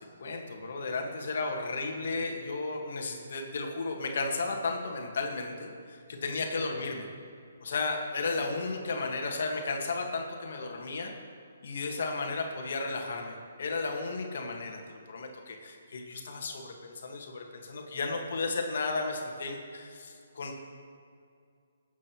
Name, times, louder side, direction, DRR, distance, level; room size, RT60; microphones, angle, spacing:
voice 1, 0.2-7.0 7.6-11.1 11.6-20.6, left 3 dB, 65° left, 2 dB, 1.6 m, -34 dB
19.0 x 7.5 x 3.0 m, 2.3 s
hypercardioid pair, 150°, 0 cm